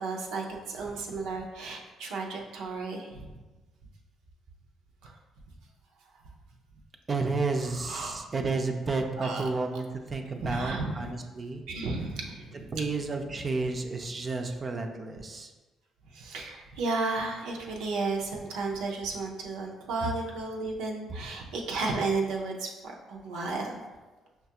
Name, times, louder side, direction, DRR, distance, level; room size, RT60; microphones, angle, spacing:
voice 1, 0.0-3.3 5.0-5.1 7.6-8.3 9.1-9.4 10.4-11.1 11.7-12.7 16.1-23.8, right 3 dB, 85° right, -1 dB, 0.6 m, -33 dB
voice 2, 7.1-11.6 12.7-15.5, right 3 dB, 40° right, 4 dB, 0.4 m, -31 dB
5.7 x 2.3 x 2.8 m, 1.2 s
supercardioid pair, 70°, 0 cm